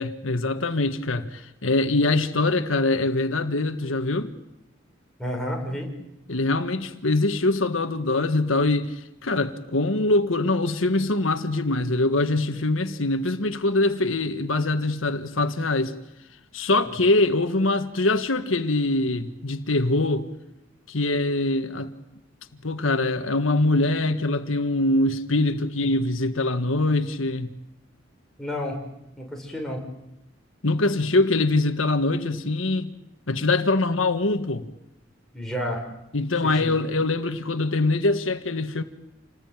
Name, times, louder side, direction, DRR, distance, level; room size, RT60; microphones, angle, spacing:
voice 1, 0.0-4.3 6.3-15.9 16.5-20.3 20.9-21.9 22.6-27.5 30.6-32.9 33.3-34.7 36.1-38.8, left 2 dB, 90° left, 1.6 m, -23 dB
voice 2, 5.2-5.9 28.4-28.8 29.2-29.8 35.3-35.8 36.4-36.7, equal, 5° left, 5.6 m, -30 dB
28.5 x 20.0 x 9.1 m
head